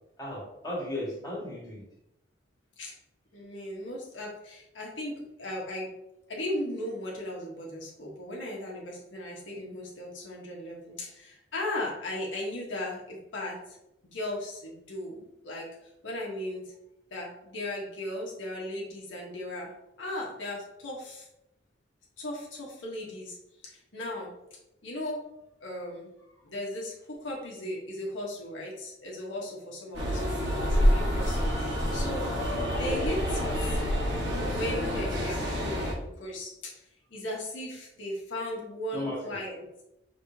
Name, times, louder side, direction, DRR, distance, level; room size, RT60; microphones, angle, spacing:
voice 1, 0.2-1.8 32.8-33.0 38.9-39.3, left 1 dB, 20° left, -6 dB, 1.5 m, -35 dB
voice 2, 3.3-5.9 6.3-13.8 14.1-16.6 17.1-19.7 20.0-21.3 22.2-23.4 23.6-24.3 24.8-25.2 25.6-26.1 26.4-32.3 32.7-33.8 34.5-36.8 37.1-39.6, left 1 dB, 80° left, -3 dB, 1.2 m, -37 dB
sound 1, 29.9-35.9, equal, 65° right, 1.3 m, -27 dB
5.5 x 3.5 x 2.7 m, 0.86 s
head